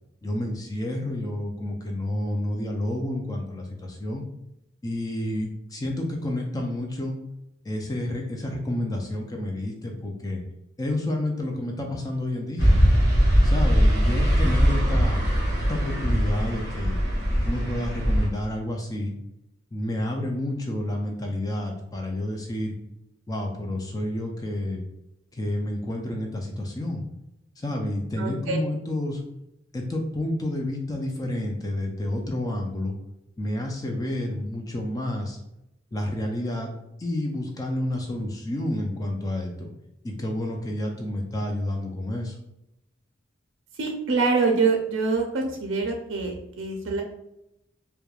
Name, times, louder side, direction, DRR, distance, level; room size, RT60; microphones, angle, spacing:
voice 1, 0.2-4.2 4.8-7.2 7.6-10.4 10.8-12.8 13.4-15.2 15.7-17.0 17.4-19.1 19.7-22.7 23.3-24.8 25.3-27.0 27.6-29.2 29.7-33.0 33.4-35.4 35.9-36.7 37.0-39.7 40.0-42.4, left 1 dB, 20° left, 1 dB, 0.3 m, -29 dB
sound 1, 12.6-18.3, equal, 60° left, 0.8 m, -21 dB
voice 2, 28.2-28.6 43.8-47.0, right 4 dB, 80° right, 2 dB, 0.4 m, -25 dB
3.1 x 2.1 x 2.3 m, 0.84 s
head